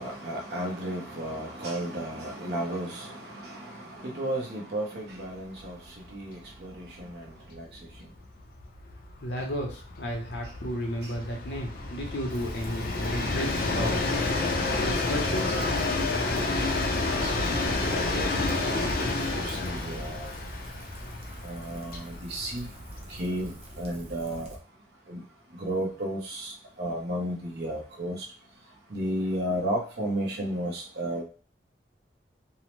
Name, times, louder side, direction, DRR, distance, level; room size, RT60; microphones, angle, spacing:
voice 1, 0.0-5.8 6.1-7.7 17.0-19.1 19.3-20.3 21.4-22.7 23.1-23.5 23.8-24.6 25.1-25.2 25.6-28.2 28.9-31.2, right 1 dB, 65° right, -2 dB, 0.8 m, -33 dB
Train, 5.6-5.7 6.0-6.1 6.4-23.8, left 2 dB, 55° left, 0.5 m, -30 dB
voice 2, 9.2-14.0 14.8-15.6, equal, 75° left, 1 dB, 0.8 m, -33 dB
Rain, 12.3-24.6, right 1 dB, 35° right, 0.6 m, -45 dB
2.7 x 2.0 x 3.1 m, 0.39 s
head